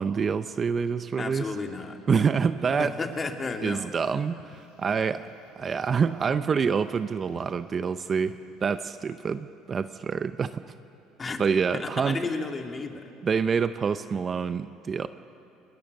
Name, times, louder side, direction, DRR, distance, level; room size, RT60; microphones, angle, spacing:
voice 1, 0.0-1.5 2.1-2.9 3.6-5.3 5.6-10.6 11.4-12.2 13.2-15.1, right 6 dB, 30° right, 12 dB, 0.7 m, -27 dB
voice 2, 1.2-2.3 2.8-3.9 11.2-11.4 11.7-13.1, left 3 dB, 25° left, 4 dB, 2.3 m, -33 dB
sound 1, 3.5-9.0, left 5 dB, 85° left, 2.9 m, -57 dB
29.5 x 21.0 x 6.6 m, 2.6 s
supercardioid pair, 105°, 0 cm